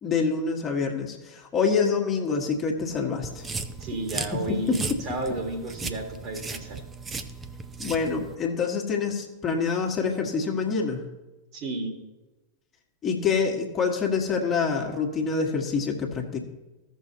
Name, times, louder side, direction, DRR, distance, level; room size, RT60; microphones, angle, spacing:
voice 1, 0.0-3.5 4.7-4.8 7.8-11.0 13.0-16.4, left 5 dB, 25° left, 1 dB, 1.4 m, -26 dB
sound 1, 3.2-8.4, right 4 dB, 15° right, 0.7 m, -36 dB
voice 2, 3.8-6.8 11.5-12.0, right 2 dB, 40° right, 3 dB, 1.7 m, -32 dB
15.5 x 6.4 x 2.8 m, 1.1 s
figure-of-eight pair, 90°, 0 cm